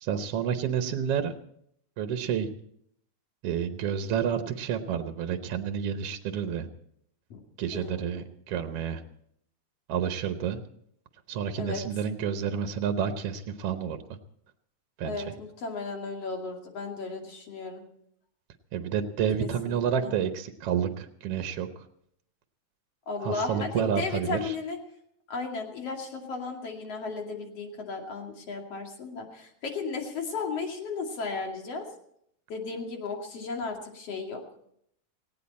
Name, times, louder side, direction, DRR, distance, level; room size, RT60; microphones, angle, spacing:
voice 1, 0.0-1.3 2.0-2.5 3.4-6.7 7.6-9.0 9.9-10.6 11.3-14.0 15.0-15.3 18.7-21.7 23.2-24.6, right 8 dB, 65° right, 8 dB, 1.7 m, -29 dB
voice 2, 7.7-8.2 11.6-11.8 15.0-17.8 19.4-20.1 23.1-24.8 25.3-31.9 32.5-34.4, left 4 dB, 55° left, 2 dB, 3.4 m, -35 dB
18.5 x 17.0 x 4.2 m, 0.70 s
omnidirectional pair, 3.3 m